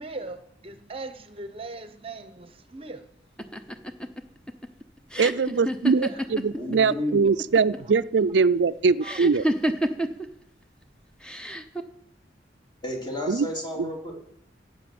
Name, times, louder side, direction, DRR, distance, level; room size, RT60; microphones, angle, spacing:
voice 1, 0.0-3.1 6.0-6.2 6.6-6.7 7.1-7.4 7.8-8.0 9.0-9.2, right 3 dB, 35° right, 11 dB, 0.9 m, -40 dB
sound 1, 3.4-7.0 7.3-7.9 9.0-10.3 11.2-11.8, equal, 5° left, 0.9 m, -29 dB
voice 2, 5.2-9.4 13.3-13.5 13.8-13.9, right 5 dB, 80° right, 15 dB, 0.4 m, -22 dB
voice 3, 6.5-7.3 12.8-14.1, left 1 dB, 25° left, 1 dB, 3.6 m, -32 dB
17.0 x 8.5 x 7.7 m, 0.73 s
head